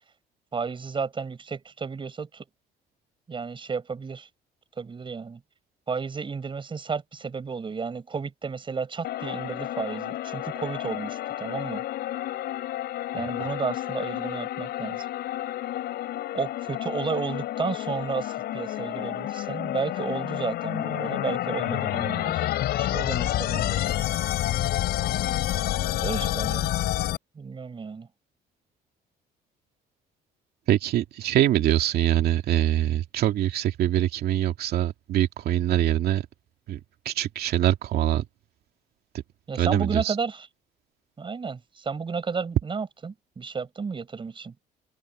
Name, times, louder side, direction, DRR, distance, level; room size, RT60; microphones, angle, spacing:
voice 1, 0.5-2.5 3.3-4.3 4.8-5.4 5.9-11.8 13.1-15.1 16.3-22.5 22.8-23.9 25.9-26.7 27.3-28.1 39.5-40.5 41.2-44.5, right 5 dB, 30° right, 6.1 m, -32 dB
sound 1, 9.0-27.2, left 13 dB, 70° left, 6.7 m, -29 dB
voice 2, 30.7-36.2 36.7-36.8 37.0-38.2 39.6-40.1, right 12 dB, 70° right, 2.4 m, -23 dB
cardioid pair, 110°, 17 cm